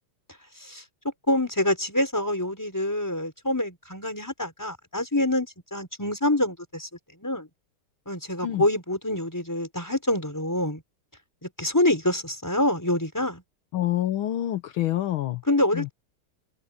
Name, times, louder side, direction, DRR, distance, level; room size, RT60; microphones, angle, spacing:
voice 1, 1.3-6.9 7.2-7.5 8.1-10.8 11.4-13.4 15.5-15.9, left 1 dB, 10° left, 4.8 m, -26 dB
voice 2, 13.7-15.4 15.7-15.9, left 13 dB, 75° left, 1.6 m, -27 dB
omnidirectional pair, 2.4 m